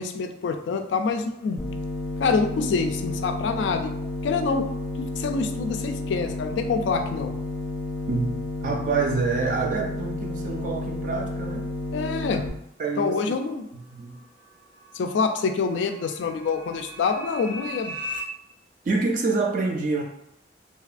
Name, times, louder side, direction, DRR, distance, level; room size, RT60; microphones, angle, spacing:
voice 1, 0.0-1.6 2.2-3.9 4.2-4.7 5.0-7.3 11.9-12.4 13.0-13.7 14.9-17.9, left 4 dB, 75° left, 6 dB, 0.3 m, -26 dB
sound 1, 1.6-12.5, left 2 dB, 10° left, 0.6 m, -31 dB
voice 2, 8.6-11.7 12.8-13.4 13.7-14.2 18.8-20.0, right 4 dB, 45° right, 1 dB, 0.3 m, -26 dB
sound 2, 13.9-18.2, left 1 dB, 90° right, 0.7 m, -39 dB
2.7 x 2.3 x 2.4 m, 0.79 s
head